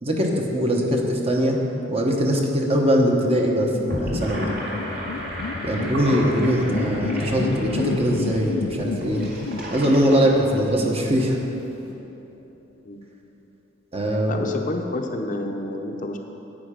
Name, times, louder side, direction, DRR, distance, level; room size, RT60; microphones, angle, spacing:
voice 1, 0.0-1.6 1.9-4.5 5.6-9.2 9.7-11.4 13.9-14.5, equal, 35° right, 0 dB, 1.1 m, -21 dB
sound 1, 3.5-12.4, left 4 dB, 85° left, 0.4 m, -32 dB
Gurgling / Sink (filling or washing), 3.7-11.2, equal, 55° right, 2.1 m, -33 dB
voice 2, 14.3-16.2, left 2 dB, 45° left, 3 dB, 0.7 m, -29 dB
10.5 x 8.6 x 5.1 m, 3.0 s
head